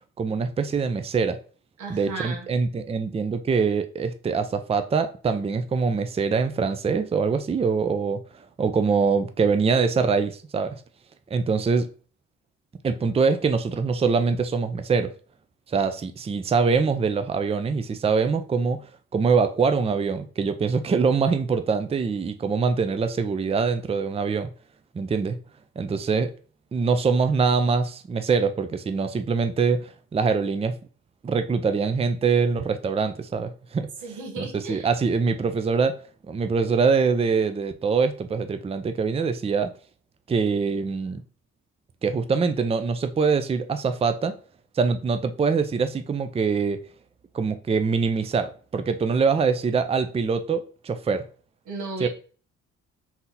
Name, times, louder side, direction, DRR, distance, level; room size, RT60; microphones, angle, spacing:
voice 1, 0.2-1.4 1.9-8.2 8.6-10.8 11.3-11.9 12.8-15.1 15.7-18.8 19.1-24.5 24.9-25.4 25.8-26.3 26.7-30.7 31.2-33.9 34.4-36.0 36.3-39.7 40.3-41.2 42.0-44.3 44.8-46.8 47.3-51.2 52.0-52.1, right 5 dB, 20° right, 0.4 m, -24 dB
voice 2, 1.8-2.5 34.0-34.9 51.7-52.1, right 3 dB, 75° right, 1.4 m, -34 dB
4.0 x 2.8 x 4.0 m
cardioid pair, 90°, 30 cm